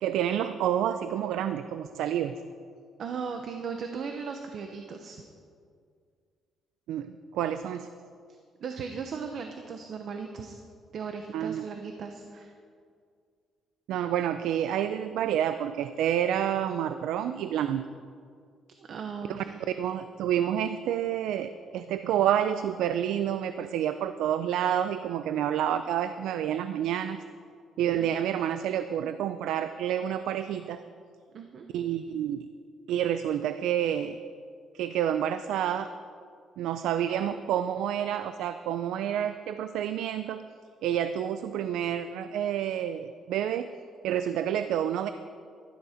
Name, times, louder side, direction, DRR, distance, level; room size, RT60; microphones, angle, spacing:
voice 1, 0.0-2.3 6.9-7.9 11.3-11.6 13.9-17.8 19.3-19.4 19.8-27.2 27.8-30.8 31.7-32.5 32.9-34.2 34.7-35.9 36.6-40.4 40.8-43.7 44.0-45.1, right 10 dB, 85° right, 10 dB, 0.4 m, -29 dB
voice 2, 3.0-5.2 8.3-10.6 10.9-12.5 18.8-19.6 28.0-28.1 31.3-31.7, right 5 dB, 50° right, 5 dB, 0.9 m, -37 dB
12.5 x 12.0 x 5.1 m, 2.2 s
cardioid pair, 150°, 0 cm